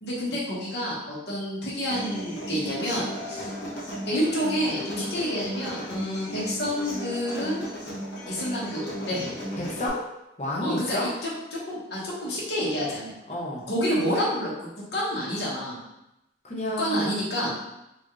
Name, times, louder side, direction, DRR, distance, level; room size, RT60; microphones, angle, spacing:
voice 1, 0.0-3.5 4.0-7.6 8.3-9.4 10.6-13.2 13.7-14.5 14.9-15.8 16.8-17.5, equal, 60° left, -6 dB, 1.3 m, -29 dB
Human voice / Acoustic guitar, 1.9-9.9, equal, 80° left, 1.1 m, -35 dB
voice 2, 9.6-10.0 10.4-11.1 13.3-13.7 16.4-17.2, left 1 dB, 35° left, -4 dB, 0.8 m, -30 dB
4.0 x 2.5 x 3.1 m, 0.88 s
head